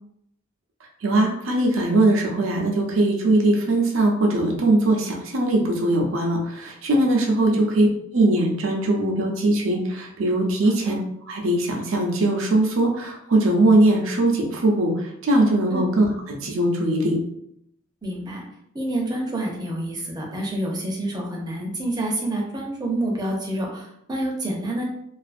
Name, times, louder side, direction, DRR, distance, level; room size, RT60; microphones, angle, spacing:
voice 1, 1.0-7.9 8.1-11.0 11.3-17.2, right 2 dB, 80° right, 0 dB, 0.6 m, -20 dB
voice 2, 10.6-11.0 15.7-15.8 18.0-18.4 18.7-24.8, right 1 dB, 20° right, -1 dB, 0.5 m, -28 dB
2.4 x 2.4 x 2.5 m, 0.74 s
head